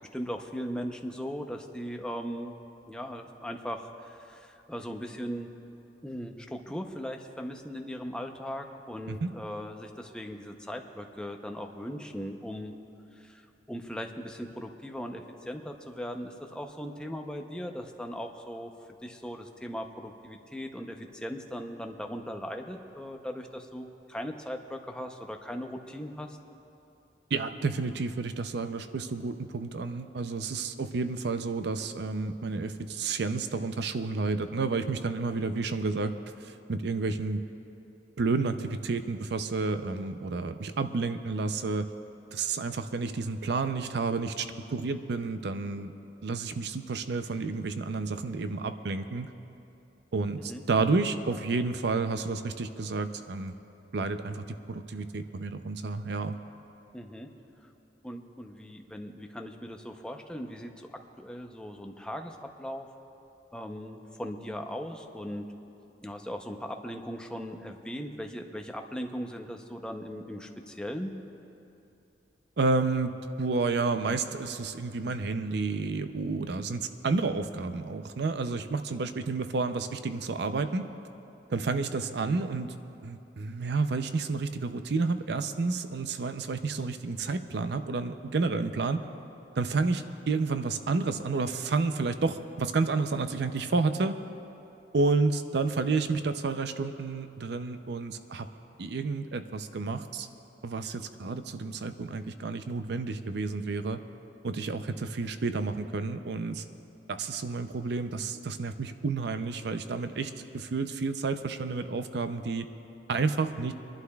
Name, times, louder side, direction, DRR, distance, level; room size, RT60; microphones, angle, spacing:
voice 1, 0.1-2.6 2.9-5.5 6.0-12.7 13.2-13.4 13.7-18.7 19.0-26.4 50.4-50.6 56.9-57.3 58.0-62.9 63.5-65.5 66.0-71.1, equal, 5° left, 3 dB, 0.6 m, -38 dB
voice 2, 27.3-37.4 38.2-41.9 42.3-45.9 46.2-49.3 50.1-53.5 53.9-56.4 72.6-80.9 81.5-82.8 83.0-89.0 89.6-94.1 94.9-98.5 98.8-100.3 100.6-104.0 104.4-106.6 107.1-112.7 113.1-113.7, right 3 dB, 70° right, 9 dB, 0.5 m, -30 dB
27.5 x 11.5 x 2.3 m, 2.8 s
head